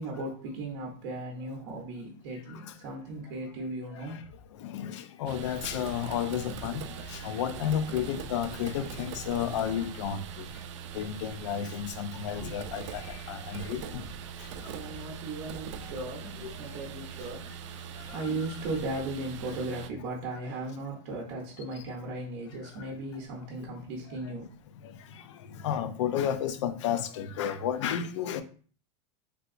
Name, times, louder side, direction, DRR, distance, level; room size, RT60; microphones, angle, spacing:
voice 1, 0.0-4.2 12.4-12.6 14.6-17.5 18.1-24.5, right 2 dB, 45° right, 0.7 m, -37 dB
voice 2, 4.6-6.8 7.1-10.5 10.9-14.0 14.4-14.7 16.4-16.6 18.1-18.4 24.8-28.4, left 9 dB, 75° left, 0.4 m, -32 dB
sound 1, 5.3-19.9, right 7 dB, 80° right, 0.4 m, -41 dB
3.4 x 2.8 x 2.5 m
supercardioid pair, 180°, 15 cm